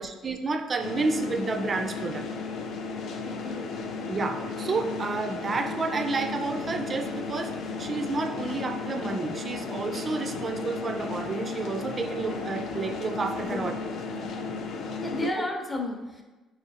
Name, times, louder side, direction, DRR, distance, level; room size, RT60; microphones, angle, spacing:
voice 1, 0.0-2.3 4.1-13.8 15.4-15.5, right 3 dB, 30° right, 7 dB, 0.4 m, -30 dB
sound 1, 0.8-15.3, left 4 dB, 65° left, 0.4 m, -34 dB
voice 2, 3.2-3.8 13.4-13.9 15.0-16.2, left 2 dB, 15° left, 2 dB, 0.6 m, -34 dB
4.9 x 3.0 x 2.7 m, 1.2 s
cardioid pair, 115°, 0 cm